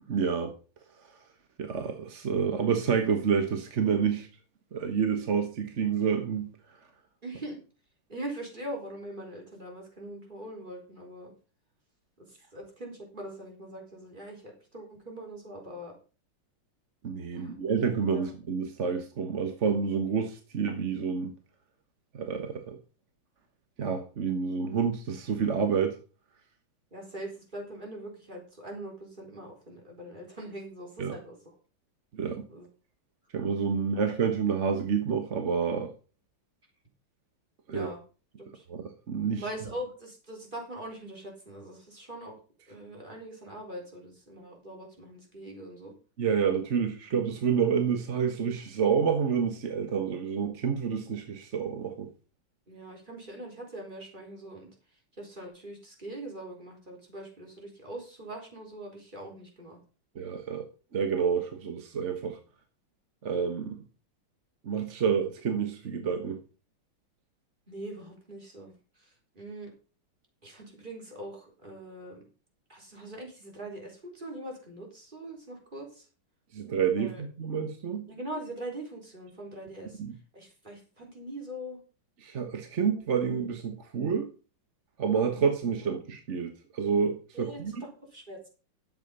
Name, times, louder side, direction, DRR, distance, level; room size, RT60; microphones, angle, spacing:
voice 1, 0.1-0.5 1.6-4.3 4.7-6.5 17.0-21.3 22.1-22.8 23.8-26.0 31.0-31.1 32.1-32.5 33.3-35.9 37.7-37.9 38.7-39.4 46.2-52.1 60.1-60.6 60.9-62.4 63.2-63.8 64.6-66.4 76.5-78.1 80.0-80.1 82.2-84.3 85.0-87.7, right 6 dB, 40° right, 6 dB, 1.3 m, -28 dB
voice 2, 7.2-7.6 8.1-11.3 12.2-12.3 12.5-15.9 17.3-17.5 18.1-18.3 26.9-31.6 32.5-32.7 33.8-34.0 37.7-38.0 38.4-38.6 39.4-42.4 42.7-45.9 52.7-54.7 55.2-59.8 67.7-68.7 69.0-69.7 70.4-72.2 72.7-76.1 77.0-77.2 78.1-80.0 80.3-81.8 87.3-88.5, right 1 dB, 20° right, 1 dB, 4.1 m, -42 dB
11.5 x 8.0 x 5.5 m, 0.35 s
omnidirectional pair, 2.3 m